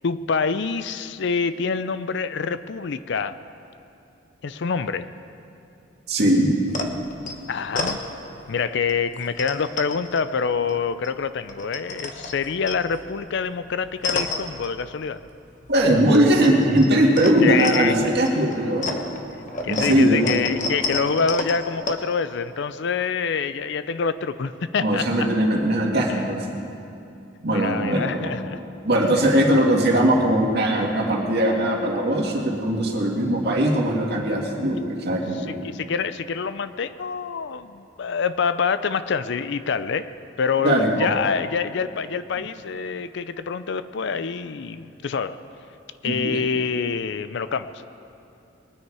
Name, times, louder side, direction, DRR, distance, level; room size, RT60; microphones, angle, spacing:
voice 1, 0.0-3.4 4.4-5.1 7.5-8.0 8.5-15.2 17.4-18.0 19.6-25.3 26.1-26.3 27.5-28.6 31.5-31.7 35.3-40.1 40.4-45.4 46.0-47.8, left 5 dB, 65° left, 13 dB, 0.5 m, -26 dB
voice 2, 6.1-6.5 15.7-19.0 19.7-20.2 24.8-26.4 27.4-28.3 28.8-35.6 40.6-41.1 46.1-46.4, right 1 dB, 60° right, -1 dB, 2.1 m, -20 dB
sound 1, 6.7-8.5 8.9-11.1 11.4-15.3 15.6-21.9, left 3 dB, 45° left, 1.0 m, -32 dB
21.5 x 9.6 x 4.8 m, 2.7 s
head